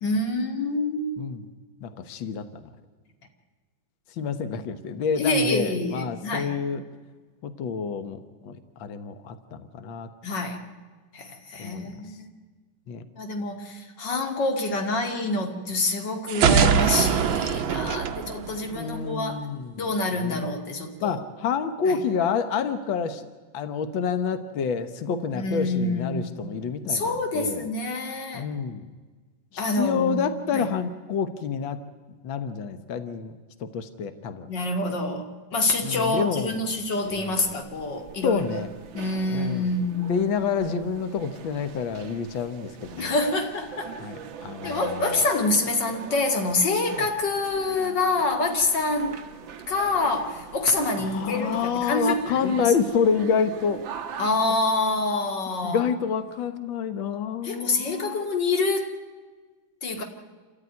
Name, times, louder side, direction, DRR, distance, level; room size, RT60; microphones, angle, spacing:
voice 1, 0.0-1.1 5.2-6.5 10.2-10.6 11.1-12.3 13.2-19.4 19.8-21.2 21.9-22.0 25.3-26.5 26.8-28.5 29.6-30.2 30.5-30.7 34.5-38.4 38.9-40.3 43.0-44.0 44.6-49.2 49.7-52.6 54.2-55.8 57.4-58.9 59.8-60.0, left 2 dB, 35° left, 4 dB, 2.6 m, -26 dB
voice 2, 1.8-2.7 4.1-6.8 7.4-10.1 11.6-12.2 12.9-13.0 18.7-19.8 20.1-20.5 21.0-23.2 23.5-27.7 28.3-28.9 29.5-31.8 32.2-34.5 35.8-36.8 37.1-37.6 38.2-38.7 39.3-39.7 40.1-43.1 44.0-45.2 46.9-47.0 51.0-53.8 55.6-58.2, left 6 dB, 75° left, 10 dB, 1.1 m, -28 dB
sound 1, 16.3-19.1, right 7 dB, 85° right, 1.1 m, -22 dB
sound 2, 37.0-54.3, right 8 dB, 60° right, 1.3 m, -42 dB
27.5 x 14.0 x 9.6 m, 1.4 s
omnidirectional pair, 3.6 m